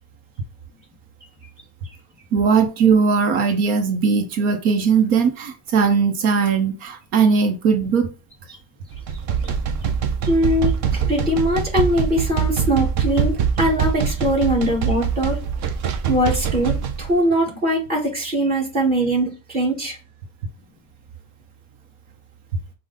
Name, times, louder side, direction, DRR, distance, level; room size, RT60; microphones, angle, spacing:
voice 1, 2.3-8.1, right 5 dB, 75° right, 1.0 m, -19 dB
sound 1, 8.9-17.1, right 7 dB, 40° right, 0.5 m, -23 dB
voice 2, 10.2-15.4 16.1-20.0, equal, 20° right, 1.9 m, -21 dB
5.1 x 2.4 x 4.0 m
cardioid pair, 180°, 47 cm